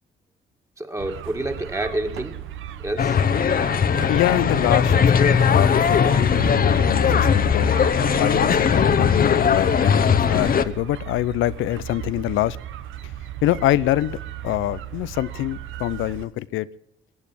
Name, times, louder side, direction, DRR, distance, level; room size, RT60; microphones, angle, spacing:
voice 1, 0.8-2.4 2.8-3.2, right 1 dB, 15° right, 2.0 m, -28 dB
sound 1, 1.0-16.2, right 11 dB, 80° right, 1.1 m, -35 dB
sound 2, 3.0-10.6, left 7 dB, 45° left, 1.0 m, -19 dB
voice 2, 4.1-7.8 8.1-12.6 13.4-16.7, left 15 dB, 85° left, 0.6 m, -25 dB
21.5 x 8.4 x 7.4 m
cardioid pair, 90°, 20 cm